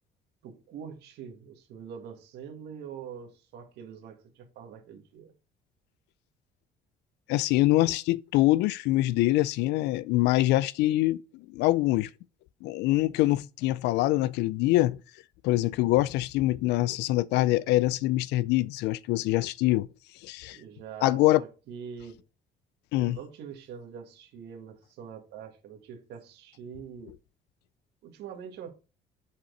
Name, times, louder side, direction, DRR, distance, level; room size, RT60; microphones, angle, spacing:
voice 1, 0.4-5.3 20.5-22.2 23.0-27.1 28.0-28.7, right 7 dB, 80° right, 1.7 m, -44 dB
voice 2, 7.3-11.2 11.5-12.1 12.6-15.0 15.4-19.9 20.2-20.6 21.0-21.4 22.9-23.2, left 17 dB, 85° left, 0.4 m, -24 dB
7.5 x 4.3 x 3.8 m
cardioid pair, 110°, 17 cm